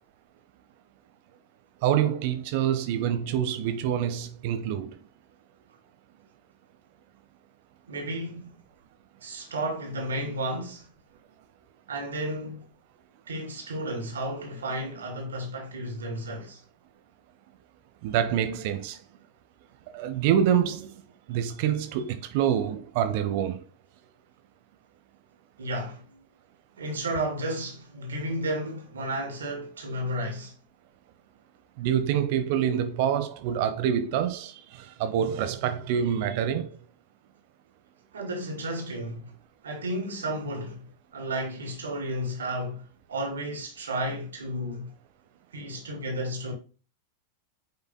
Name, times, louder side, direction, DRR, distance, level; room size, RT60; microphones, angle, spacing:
voice 1, 1.8-4.9 18.0-19.0 19.9-20.9 21.3-23.6 31.8-36.7, right 9 dB, 50° right, 0.8 m, -26 dB
voice 2, 7.9-8.6 9.2-10.9 11.9-12.6 13.3-16.6 25.6-26.1 26.8-30.5 38.1-39.3 39.6-40.9 41.1-44.9 45.5-46.5, right 1 dB, 70° right, 2.7 m, -32 dB
8.8 x 5.8 x 2.2 m
figure-of-eight pair, 90°, 0 cm